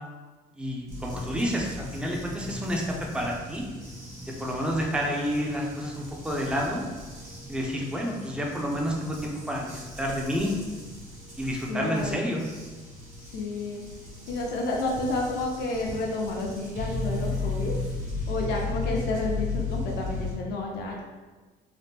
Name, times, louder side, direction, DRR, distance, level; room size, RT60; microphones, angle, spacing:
voice 1, 0.6-3.6 4.4-6.8 7.5-10.6 11.4-12.4, equal, 5° right, -1 dB, 0.5 m, -29 dB
sound 1, 0.9-20.3, left 3 dB, 45° right, 1.3 m, -36 dB
voice 2, 11.7-12.3 13.2-13.8 14.3-17.7 18.3-21.0, left 2 dB, 75° left, -1 dB, 0.6 m, -30 dB
2.9 x 2.1 x 3.4 m, 1.3 s
cardioid pair, 110°, 17 cm